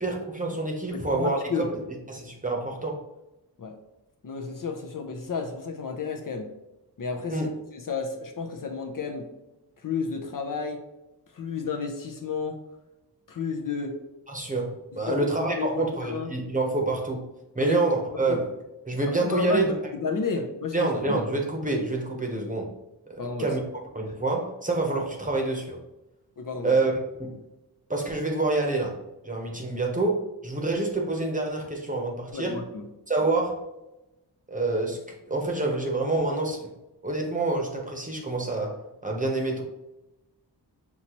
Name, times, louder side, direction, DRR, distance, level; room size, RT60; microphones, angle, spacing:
voice 1, 0.0-1.5 2.1-3.0 7.3-7.5 14.3-17.3 17.5-18.5 18.8-19.7 20.7-22.7 23.1-23.6 23.9-25.8 26.6-26.9 27.2-27.4 27.9-32.6 33.1-33.6 34.5-35.0 35.3-36.7 37.0-38.8 39.0-39.6, right 2 dB, 20° right, 1 dB, 0.9 m, -27 dB
voice 2, 0.9-1.7 3.6-3.7 4.2-6.5 7.0-9.3 9.8-10.8 11.3-12.6 13.3-14.0 14.9-16.3 17.6-17.8 18.3-18.4 19.0-19.7 20.0-21.2 23.2-23.5 26.4-26.8 32.3-32.8, left 5 dB, 50° left, 3 dB, 0.6 m, -32 dB
5.7 x 2.9 x 2.9 m, 0.96 s
wide cardioid pair, 105°, 41 cm